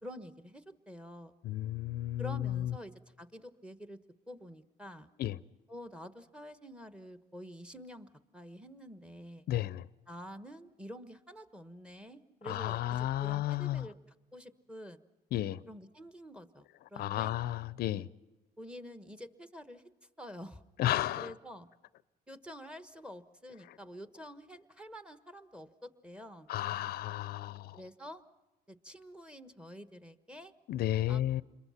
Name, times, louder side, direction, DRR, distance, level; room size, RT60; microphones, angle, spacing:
voice 1, 0.0-1.3 2.2-4.0 4.3-5.1 5.7-9.4 10.1-13.9 14.3-15.0 15.7-17.4 18.6-19.9 20.2-20.6 21.2-21.7 22.3-26.5 27.7-28.2 28.7-30.5 31.1-31.4, equal, 5° right, 1.3 m, -48 dB
voice 2, 1.4-2.7 5.2-5.4 9.5-9.9 12.4-13.9 15.3-15.6 17.0-18.1 20.8-21.3 26.5-27.8 30.7-31.4, left 13 dB, 65° left, 0.6 m, -33 dB
27.5 x 22.0 x 5.8 m
cardioid pair, 110°, 17 cm